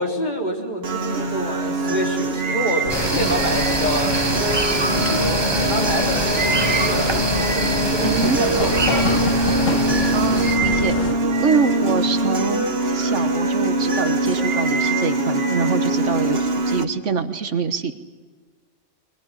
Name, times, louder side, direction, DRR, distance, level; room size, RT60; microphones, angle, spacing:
voice 1, 0.0-4.2 4.9-8.8, equal, 35° left, 0 dB, 3.8 m, -27 dB
sound 1, 0.8-16.8, right 2 dB, 55° right, 1.7 m, -23 dB
sound 2, 2.8-11.1, left 4 dB, 85° left, 2.0 m, -27 dB
sound 3, 2.9-10.6, right 3 dB, 20° right, 1.1 m, -25 dB
voice 2, 8.0-8.4 10.1-10.9 11.4-18.1, right 5 dB, 70° right, 10 dB, 1.5 m, -25 dB
23.0 x 20.5 x 9.9 m, 1.4 s
omnidirectional pair, 1.3 m